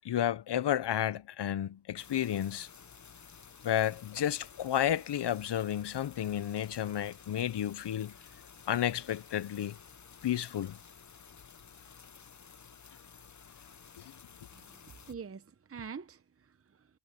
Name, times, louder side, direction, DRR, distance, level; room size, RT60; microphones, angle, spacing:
voice 1, 0.0-2.7 3.6-8.1 8.7-9.8 10.2-10.8 14.0-14.1, left 11 dB, 75° left, 0.7 m, -32 dB
sound 1, 2.0-15.1, left 6 dB, 45° left, 0.8 m, -54 dB
voice 2, 15.1-16.9, right 6 dB, 35° right, 0.8 m, -45 dB
wide cardioid pair, 100°, 41 cm